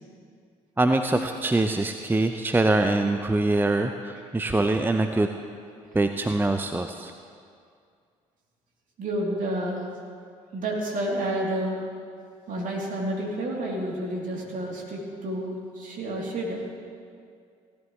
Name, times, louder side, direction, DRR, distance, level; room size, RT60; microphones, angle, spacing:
voice 1, 0.8-5.3 5.9-7.1, right 2 dB, 10° right, 7 dB, 0.6 m, -24 dB
voice 2, 9.0-9.8 10.5-11.8 12.5-16.6, right 1 dB, 50° right, -2 dB, 3.1 m, -30 dB
17.0 x 11.5 x 3.2 m, 2.2 s
hypercardioid pair, 50°, 17 cm